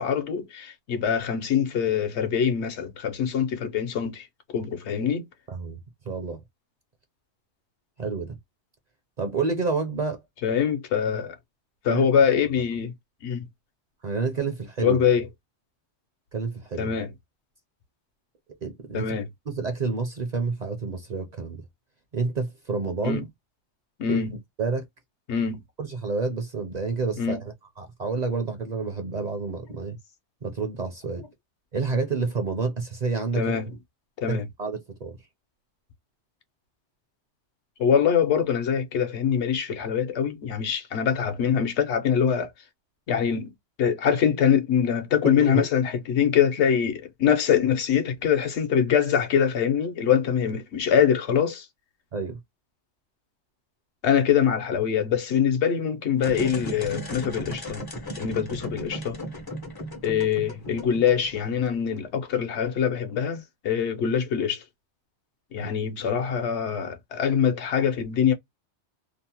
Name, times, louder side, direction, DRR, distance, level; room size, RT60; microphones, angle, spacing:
voice 1, 0.0-4.3 4.5-5.3 10.4-11.4 11.8-12.9 13.2-13.5 14.8-15.3 16.8-17.1 18.9-19.3 23.0-23.2 24.0-24.3 25.3-25.6 27.2-27.4 31.2-31.3 33.3-33.8 34.2-34.5 37.8-42.5 43.1-43.5 43.8-51.7 54.0-57.8 58.2-59.2 60.0-64.6 65.5-68.3, left 8 dB, 75° left, 0.9 m, -24 dB
voice 2, 5.5-5.8 6.1-6.4 8.0-8.4 9.2-10.2 11.9-12.1 14.0-15.0 16.3-16.9 18.6-19.1 19.5-21.6 22.1-23.3 24.1-24.2 24.6-24.9 25.8-30.0 30.4-31.2 31.7-33.5 34.3-35.1 45.2-45.6 52.1-52.4 65.6-65.7, right 4 dB, 50° right, 0.6 m, -29 dB
sound 1, 56.1-62.0, equal, 30° left, 0.4 m, -36 dB
2.7 x 2.0 x 2.8 m
omnidirectional pair, 1.2 m